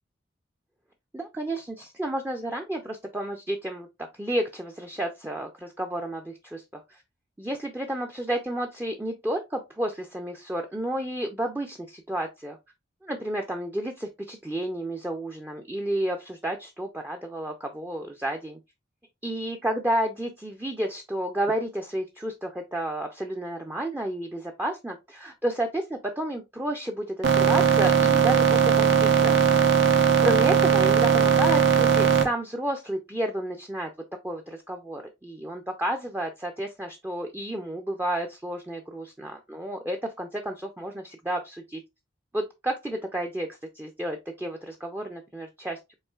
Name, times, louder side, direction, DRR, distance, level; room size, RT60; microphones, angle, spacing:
voice 1, 1.1-3.9 4.1-7.0 7.4-12.6 13.0-18.6 19.2-29.4 30.2-33.9 34.2-41.8 42.3-43.5 43.7-45.8, right 1 dB, 10° right, 5 dB, 0.4 m, -31 dB
sound 1, 27.2-32.2, right 7 dB, 80° right, 0.9 m, -19 dB
5.4 x 3.6 x 2.3 m, 0.22 s
head